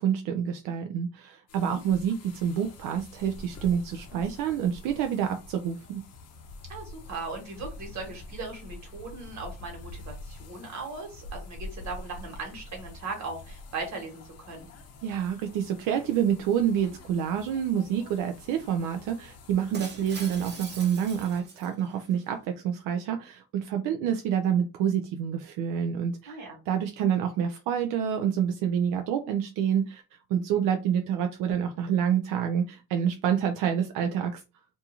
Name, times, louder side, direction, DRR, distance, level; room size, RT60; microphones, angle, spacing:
voice 1, 0.0-6.0 15.0-34.4, right 8 dB, 90° right, 5 dB, 0.5 m, -28 dB
sound 1, 1.5-21.4, left 2 dB, 50° left, 0.6 m, -46 dB
voice 2, 6.7-14.7 26.3-26.6, right 3 dB, 60° right, 2 dB, 1.4 m, -38 dB
Shatter, 19.7-22.1, right 4 dB, 35° right, 0.8 m, -43 dB
2.6 x 2.3 x 2.8 m, 0.29 s
cardioid pair, 120°, 32 cm